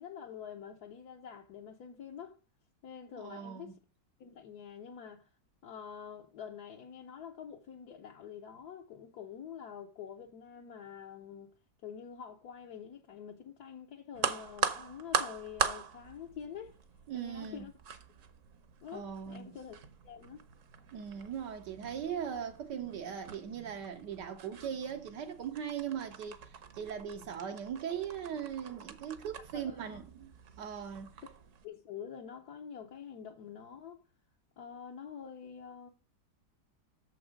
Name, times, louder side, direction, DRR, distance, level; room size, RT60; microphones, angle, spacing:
voice 1, 0.0-2.4 2.8-3.8 4.2-5.3 5.6-11.5 11.8-16.8 17.1-17.7 18.8-19.8 20.0-20.4 29.5-30.0 31.6-34.0 34.6-35.9, left 8 dB, 70° left, 1.4 m, -46 dB
voice 2, 3.2-3.7 17.1-17.7 18.9-19.6 20.9-31.1, right 8 dB, 80° right, 1.5 m, -39 dB
sound 1, 14.1-31.6, right 6 dB, 55° right, 1.1 m, -41 dB
7.0 x 6.3 x 5.1 m
omnidirectional pair, 1.8 m